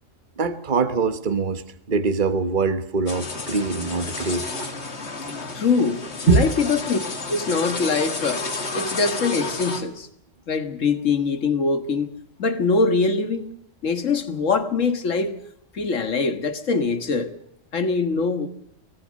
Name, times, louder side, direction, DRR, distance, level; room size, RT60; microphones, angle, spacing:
voice 1, 0.4-1.6 1.9-4.8 6.3-6.5, right 4 dB, 40° right, 10 dB, 1.4 m, -23 dB
sound 1, 3.1-9.8, left 3 dB, 55° left, 2.3 m, -31 dB
voice 2, 5.5-7.0 7.3-8.5 8.7-10.1 10.5-12.1 12.4-13.5 13.8-15.3 15.7-17.3 17.7-18.5, left 4 dB, 70° left, 10 dB, 2.0 m, -23 dB
23.5 x 18.0 x 6.4 m, 0.71 s
omnidirectional pair, 1.3 m